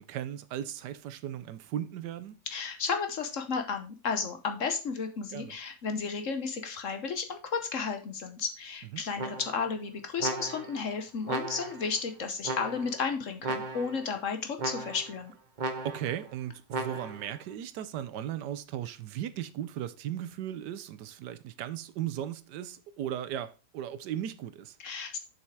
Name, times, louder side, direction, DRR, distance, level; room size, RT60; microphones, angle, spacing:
voice 1, 0.0-2.4 5.3-5.6 8.9-9.0 15.8-24.8, right 11 dB, 75° right, 1.3 m, -37 dB
voice 2, 2.5-15.3 24.8-25.2, left 5 dB, 55° left, 1.1 m, -33 dB
sound 1, 9.2-9.7 10.2-10.8 11.3-11.9 12.4-13.0 13.4-14.1 14.6-15.2 15.6-16.2 16.7-17.3, right 3 dB, 35° right, 0.8 m, -36 dB
7.1 x 5.7 x 4.7 m
omnidirectional pair, 1.9 m